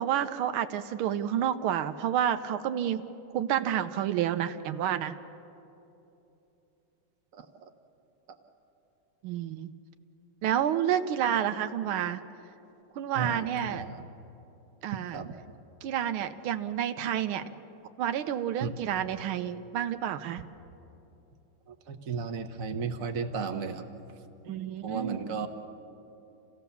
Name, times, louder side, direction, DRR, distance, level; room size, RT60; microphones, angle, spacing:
voice 1, 0.0-3.0 3.3-5.2 9.2-9.7 10.4-12.2 13.0-13.9 14.8-15.2 15.8-17.5 18.0-20.4 24.5-25.2, right 10 dB, 90° right, 10 dB, 1.6 m, -29 dB
voice 2, 7.3-7.7 13.1-14.0 15.1-15.3 18.6-18.7 21.7-23.8 24.8-25.5, right 5 dB, 50° right, 5 dB, 1.3 m, -34 dB
27.5 x 16.0 x 7.0 m, 2.9 s
omnidirectional pair, 2.3 m